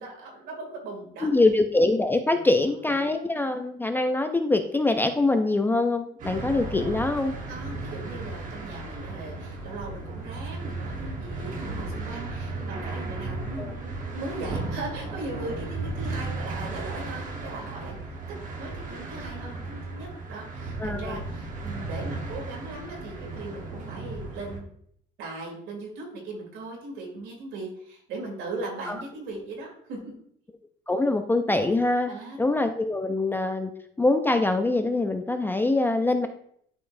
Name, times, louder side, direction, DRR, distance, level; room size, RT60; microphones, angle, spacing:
voice 1, 0.0-1.3 2.3-2.5 7.5-18.1 18.6-24.7 25.2-30.1 32.1-32.4, right 2 dB, 75° right, 0 dB, 2.6 m, -38 dB
voice 2, 1.2-7.4 13.6-13.7 20.8-21.2 28.9-29.0 30.9-32.1 32.4-33.7 34.0-36.3, left 2 dB, 10° left, 6 dB, 0.3 m, -24 dB
sound 1, 6.2-24.6, right 3 dB, 40° right, 1.1 m, -35 dB
11.5 x 4.0 x 2.6 m, 0.67 s
cardioid pair, 155°, 20 cm